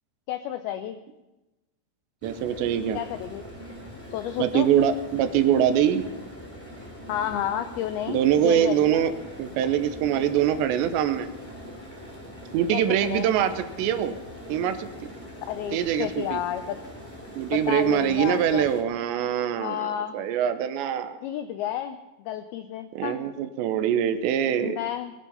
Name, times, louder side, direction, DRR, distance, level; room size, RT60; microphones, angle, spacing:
voice 1, 0.3-1.0 2.9-3.4 4.1-4.7 7.1-9.0 12.7-13.3 15.5-16.8 17.5-18.7 19.6-20.2 21.2-23.2 24.6-25.1, left 11 dB, 90° left, 9 dB, 2.2 m, -31 dB
sound 1, 2.2-18.8, equal, 5° left, 1.5 m, -42 dB
voice 2, 2.2-3.0 4.4-6.1 8.1-9.1 9.4-11.3 12.5-14.2 14.5-14.9 15.7-16.4 17.4-21.2 23.0-24.8, right 9 dB, 85° right, 10 dB, 3.0 m, -24 dB
20.5 x 9.4 x 5.6 m, 1.0 s
omnidirectional pair, 5.2 m